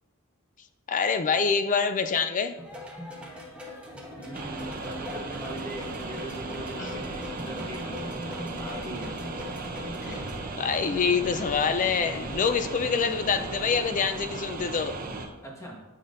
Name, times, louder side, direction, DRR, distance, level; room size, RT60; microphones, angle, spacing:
voice 1, 0.9-2.6 10.0-10.3 10.6-14.9, left 6 dB, 35° left, 10 dB, 0.4 m, -26 dB
sound 1, 2.6-10.4, left 1 dB, 5° right, 1.1 m, -41 dB
voice 2, 4.2-8.1 8.4-9.2 12.8-13.2 15.4-15.8, right 1 dB, 15° left, -2 dB, 1.3 m, -40 dB
sound 2, 4.3-15.3, right 3 dB, 40° right, 0.6 m, -37 dB
sound 3, 5.4-15.2, left 1 dB, 55° left, 1.3 m, -46 dB
8.3 x 5.5 x 2.6 m, 1.1 s
head